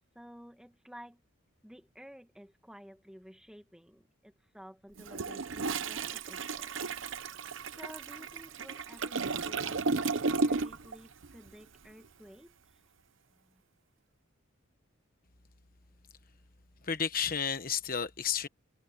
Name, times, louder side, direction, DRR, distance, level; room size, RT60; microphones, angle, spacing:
voice 1, 0.1-1.2 1.6-7.3 7.8-12.5 13.3-13.6, equal, 5° right, 1.6 m, -53 dB
Toilet flush, 5.0-11.0 11.2-11.5, right 4 dB, 75° right, 0.9 m, -34 dB
voice 2, 16.8-18.5, left 7 dB, 45° left, 1.2 m, -32 dB
head